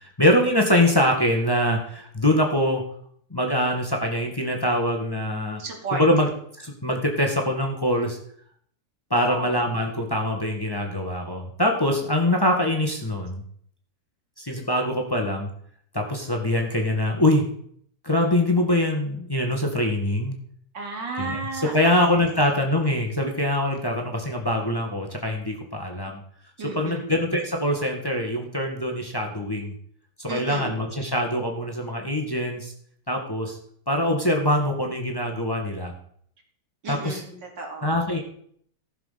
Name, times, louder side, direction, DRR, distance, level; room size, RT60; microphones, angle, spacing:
voice 1, 0.2-2.8 3.3-5.6 5.9-6.3 6.6-8.2 9.1-13.4 14.4-15.5 15.9-17.4 18.0-20.3 21.2-26.2 26.6-29.7 30.2-32.7 33.1-33.6 33.9-35.9 36.9-37.2 37.8-38.2, left 1 dB, 15° left, 2 dB, 1.7 m, -23 dB
voice 2, 5.6-6.0 9.1-9.5 20.7-22.2 26.6-27.2 30.3-30.7 36.8-37.9, right 3 dB, 90° right, 1 dB, 3.4 m, -33 dB
15.5 x 6.8 x 5.7 m, 0.63 s
omnidirectional pair, 1.9 m